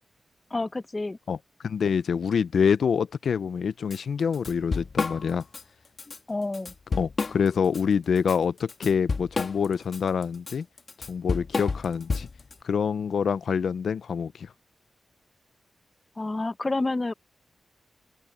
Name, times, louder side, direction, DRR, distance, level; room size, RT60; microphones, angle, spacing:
voice 1, 0.5-1.2 6.1-6.7 16.2-17.1, left 2 dB, 25° left, 0.7 m, -29 dB
voice 2, 1.6-5.4 6.9-10.7 11.1-12.3 12.6-14.5, left 6 dB, 80° left, 0.4 m, -26 dB
Drum kit / Drum, 3.9-4.0 4.3-5.6 6.0-6.2 6.5-7.8 8.2-12.5, left 4 dB, 50° left, 2.0 m, -30 dB
open air
wide cardioid pair, 95°, 0 cm